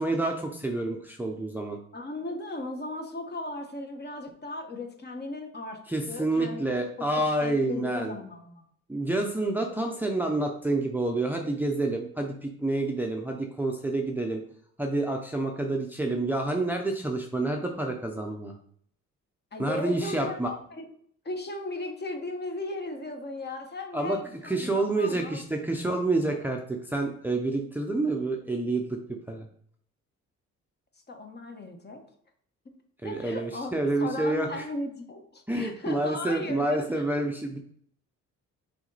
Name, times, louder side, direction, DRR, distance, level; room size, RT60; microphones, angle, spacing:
voice 1, 0.0-1.8 5.9-8.1 8.9-14.4 14.8-18.6 19.6-20.5 23.9-24.2 24.5-29.0 29.3-29.5 33.0-34.6 35.5-37.6, right 2 dB, 5° right, 1 dB, 0.8 m, -28 dB
voice 2, 1.9-5.8 6.1-8.6 10.0-10.1 19.5-20.9 21.2-25.4 31.1-32.0 32.6-32.7 33.0-33.7 34.0-37.0, left 2 dB, 35° left, 3 dB, 1.4 m, -37 dB
6.1 x 4.2 x 4.1 m, 0.62 s
cardioid pair, 90°, 30 cm